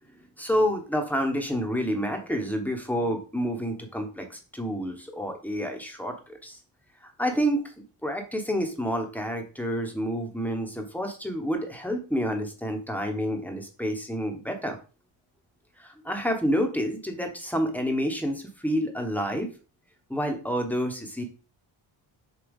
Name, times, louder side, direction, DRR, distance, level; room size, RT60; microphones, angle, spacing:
voice 1, 0.4-6.6 7.0-7.7 8.0-14.8 15.8-19.5 20.1-21.2, equal, 5° left, 4 dB, 1.2 m, -29 dB
7.2 x 2.8 x 5.3 m, 0.35 s
wide cardioid pair, 140°, 47 cm